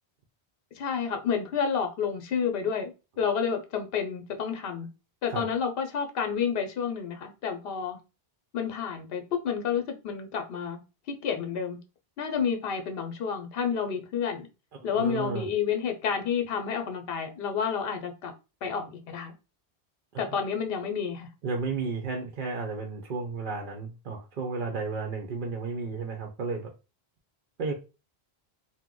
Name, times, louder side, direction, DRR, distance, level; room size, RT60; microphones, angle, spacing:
voice 1, 0.8-4.9 5.2-8.0 8.5-10.8 11.1-11.8 12.2-14.5 14.8-18.3 18.6-19.3 20.2-21.3, left 7 dB, 65° left, 0.8 m, -30 dB
voice 2, 14.9-15.5 20.1-20.2 21.4-26.7 27.6-27.7, right 4 dB, 55° right, 0.7 m, -33 dB
2.9 x 2.1 x 3.6 m
omnidirectional pair, 1.1 m